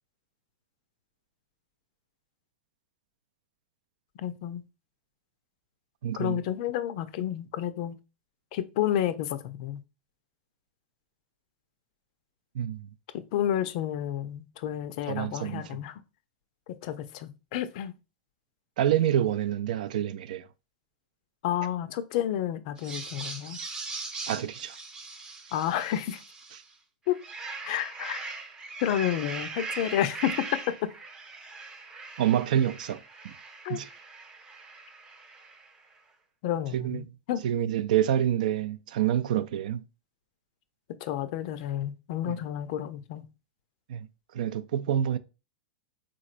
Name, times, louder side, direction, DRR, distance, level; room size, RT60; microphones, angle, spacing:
voice 1, 4.2-4.6 6.2-8.0 8.5-9.8 13.3-16.0 16.7-17.9 21.4-23.6 25.5-26.2 27.1-27.2 27.6-28.2 28.8-30.9 33.6-33.8 36.4-37.4 40.9-43.3, left 11 dB, 55° left, 0.4 m, -30 dB
voice 2, 6.0-6.4 12.5-12.9 15.1-15.6 18.8-20.4 24.3-24.8 32.2-33.3 33.7-33.9 36.7-37.0 37.4-39.8 42.3-42.4 43.9-44.1 44.3-45.2, right 10 dB, 75° right, 0.3 m, -27 dB
sound 1, 22.8-26.7 27.1-35.8, right 3 dB, 20° right, 0.6 m, -40 dB
3.7 x 3.1 x 2.4 m
hypercardioid pair, 120°, 4 cm